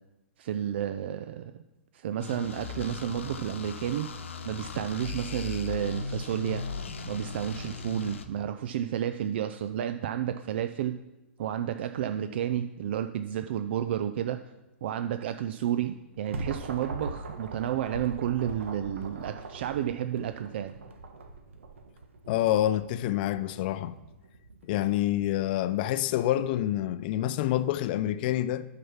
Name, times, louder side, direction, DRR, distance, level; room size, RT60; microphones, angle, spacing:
voice 1, 0.4-1.6 1.9-4.1 4.5-6.6 7.1-11.0 11.4-14.4 14.8-20.7, right 10 dB, 55° right, 0.5 m, -31 dB
sound 1, 2.2-8.3, left 4 dB, 70° left, 0.9 m, -37 dB
sound 2, 15.9-25.4, right 3 dB, 70° right, 1.3 m, -42 dB
voice 2, 22.3-23.9 24.6-28.6, left 13 dB, 45° left, 0.5 m, -27 dB
9.2 x 5.9 x 5.8 m
figure-of-eight pair, 110°, 7 cm